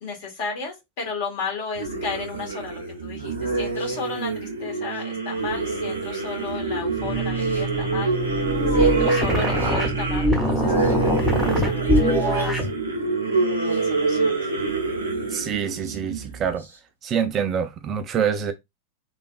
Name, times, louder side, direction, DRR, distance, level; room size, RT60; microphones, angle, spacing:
voice 1, 0.0-8.2 8.7-12.7 13.2-14.4, left 5 dB, 50° left, 1.3 m, -34 dB
sound 1, 1.7-16.6, right 3 dB, 80° right, 0.7 m, -26 dB
sound 2, 7.0-12.7, right 1 dB, ahead, 0.8 m, -23 dB
voice 2, 15.3-16.7 17.0-18.5, right 7 dB, 30° right, 0.4 m, -25 dB
3.2 x 2.3 x 2.4 m
figure-of-eight pair, 90°, 0 cm